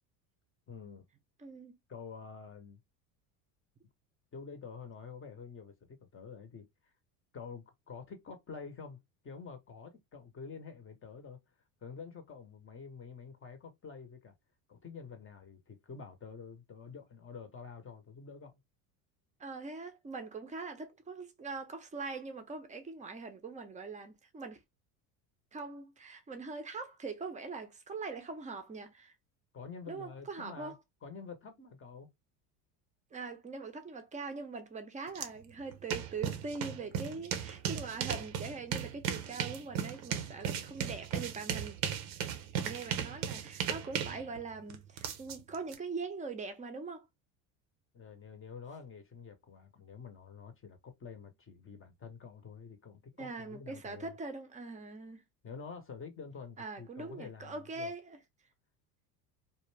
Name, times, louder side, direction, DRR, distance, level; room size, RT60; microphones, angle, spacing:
voice 1, 0.7-1.0 1.9-2.8 4.3-6.7 7.3-9.0 9.2-11.4 11.8-14.3 14.7-18.6 29.5-30.7 31.0-32.1 47.9-54.2 55.4-57.9, left 5 dB, 25° left, 0.7 m, -48 dB
voice 2, 1.4-1.7 19.4-24.6 25.5-29.1 29.9-30.8 33.1-41.8 42.6-47.1 53.2-55.2 56.6-58.2, right 4 dB, 15° right, 0.6 m, -42 dB
sound 1, 35.2-35.3 35.6-45.8, right 9 dB, 80° right, 0.7 m, -36 dB
2.5 x 2.2 x 3.1 m
hypercardioid pair, 90°, 49 cm